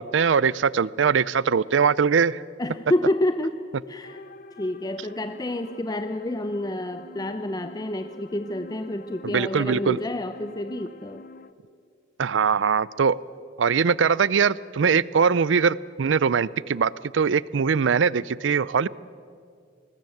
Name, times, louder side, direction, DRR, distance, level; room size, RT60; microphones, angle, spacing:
voice 1, 0.0-2.4 9.3-10.0 12.2-13.2 13.6-18.9, right 6 dB, 75° right, 21 dB, 0.5 m, -21 dB
voice 2, 2.6-3.6 3.9-4.2 4.6-11.2, left 1 dB, 20° left, 9 dB, 0.6 m, -28 dB
sound 1, 4.0-11.5, left 2 dB, 50° left, 0.8 m, -46 dB
21.0 x 19.5 x 7.8 m, 2.2 s
head